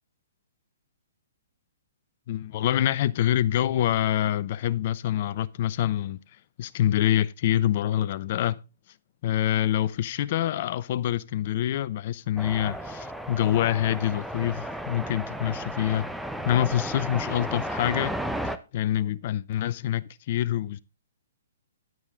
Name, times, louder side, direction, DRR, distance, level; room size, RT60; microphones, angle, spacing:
voice 1, 2.3-6.2 6.6-8.6 9.2-16.1 16.4-18.2 18.7-20.8, left 11 dB, 45° left, 0.7 m, -26 dB
sound 1, 12.4-18.6, right 1 dB, ahead, 0.8 m, -34 dB
10.0 x 9.4 x 3.7 m
hypercardioid pair, 130°, 0 cm